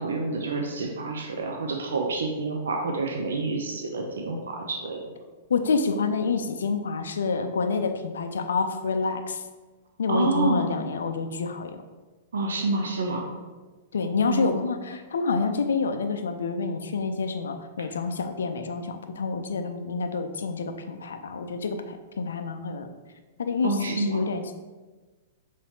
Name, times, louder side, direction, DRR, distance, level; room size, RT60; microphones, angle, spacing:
voice 1, 0.0-5.0 10.1-10.7 12.3-13.3 14.3-14.6 23.6-24.2, right 3 dB, 65° right, 1 dB, 0.5 m, -28 dB
voice 2, 5.5-9.4 10.0-11.7 13.9-22.9 23.4-24.5, left 4 dB, 65° left, 7 dB, 0.4 m, -28 dB
5.5 x 3.2 x 2.7 m, 1.3 s
figure-of-eight pair, 105°, 0 cm